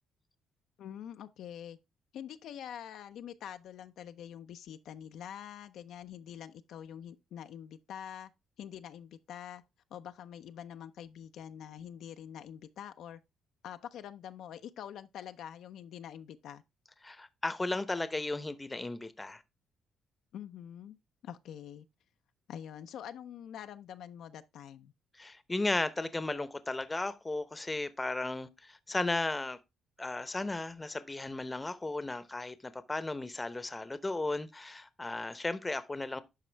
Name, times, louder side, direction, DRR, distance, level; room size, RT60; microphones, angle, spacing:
voice 1, 0.8-1.8 2.1-8.3 8.6-9.6 9.9-13.2 13.6-16.6 20.3-21.0 21.2-21.8 22.5-24.9, left 9 dB, 75° left, 0.5 m, -45 dB
voice 2, 17.0-19.4 25.2-29.6 30.0-36.2, left 2 dB, 20° left, 0.8 m, -35 dB
11.5 x 4.3 x 3.3 m
cardioid pair, 90°, 0 cm